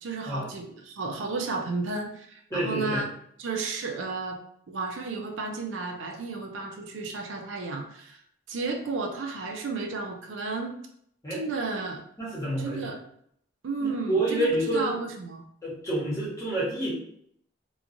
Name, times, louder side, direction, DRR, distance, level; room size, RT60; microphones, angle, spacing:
voice 1, 0.0-3.1 3.4-4.4 4.7-8.2 8.5-10.8 11.3-12.0 12.6-13.0 13.6-15.4, right 3 dB, 75° right, 3 dB, 0.4 m, -32 dB
voice 2, 2.5-3.0 11.2-11.4 12.2-12.9 13.8-14.9 15.6-16.9, right 1 dB, 15° left, -7 dB, 1.0 m, -28 dB
2.9 x 2.3 x 2.5 m, 0.68 s
head